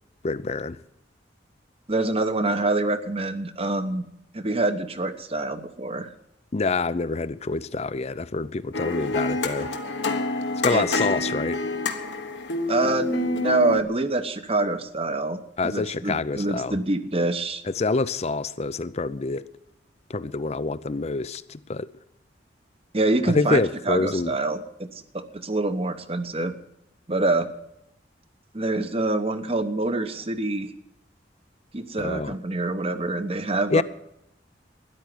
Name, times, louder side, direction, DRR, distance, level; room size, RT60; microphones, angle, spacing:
voice 1, 0.2-0.8 6.5-9.7 10.6-11.6 15.6-16.8 17.7-19.5 20.1-21.9 23.2-24.3 32.0-32.3 33.7-33.8, left 3 dB, 35° left, 0.6 m, -26 dB
voice 2, 1.9-4.0 4.3-6.1 10.7-10.9 12.7-17.6 22.9-26.5 27.1-27.5 28.5-30.7 31.7-33.8, right 2 dB, 35° right, 1.0 m, -26 dB
sound 1, 8.7-13.8, left 2 dB, 75° left, 1.4 m, -27 dB
13.0 x 10.5 x 9.5 m
head